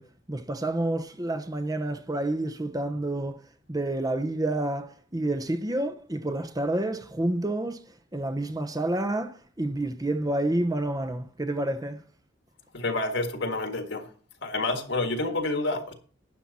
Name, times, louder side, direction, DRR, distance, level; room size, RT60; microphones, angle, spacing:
voice 1, 0.0-3.4 3.7-12.0, right 1 dB, 20° right, 0.9 m, -29 dB
voice 2, 12.7-14.1 14.4-15.9, left 2 dB, 65° left, 1.8 m, -28 dB
12.0 x 9.1 x 4.2 m
head